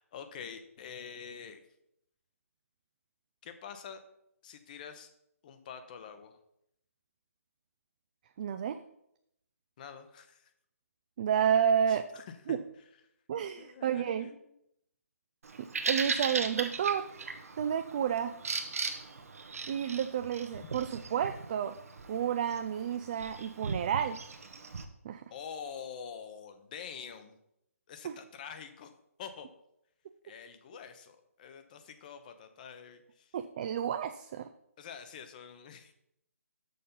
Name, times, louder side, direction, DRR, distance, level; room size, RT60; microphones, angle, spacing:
voice 1, 0.0-1.6 3.4-4.0 4.4-5.1 5.4-6.3 9.8-10.5 11.9-12.6 13.6-14.4 20.6-20.7 25.3-27.3 27.9-28.9 29.2-29.5 30.2-33.3 34.8-35.9, left 7 dB, 35° left, 9 dB, 0.8 m, -46 dB
voice 2, 8.4-8.8 11.2-12.1 12.5-12.6 13.3-14.3 15.9-17.1 17.6-18.3 19.7-21.8 22.1-24.2 25.0-25.2 28.0-28.1 33.3-34.5, right 8 dB, 35° right, 8 dB, 0.3 m, -30 dB
Bird vocalization bird call bird song, 15.4-24.8, right 4 dB, 70° right, 1.0 m, -38 dB
6.7 x 5.4 x 5.4 m, 0.77 s
hypercardioid pair, 155°, 8 cm